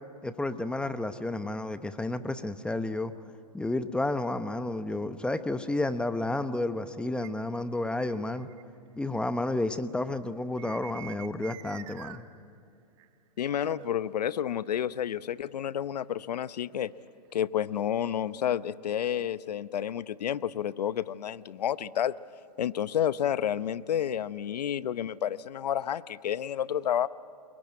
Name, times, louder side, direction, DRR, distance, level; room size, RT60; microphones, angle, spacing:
voice 1, 0.2-3.1 3.5-8.5 9.0-12.2, left 2 dB, 5° left, 11 dB, 0.8 m, -31 dB
sound 1, 7.2-7.3 8.0-8.6 10.6-12.2 13.0-13.1 13.4-14.8 16.0-17.3, right 14 dB, 50° right, 1.7 m, -46 dB
voice 2, 13.4-16.9 17.3-22.1 22.6-27.1, left 10 dB, 80° left, 16 dB, 0.8 m, -30 dB
29.0 x 21.5 x 9.4 m, 2.6 s
hypercardioid pair, 130°, 20 cm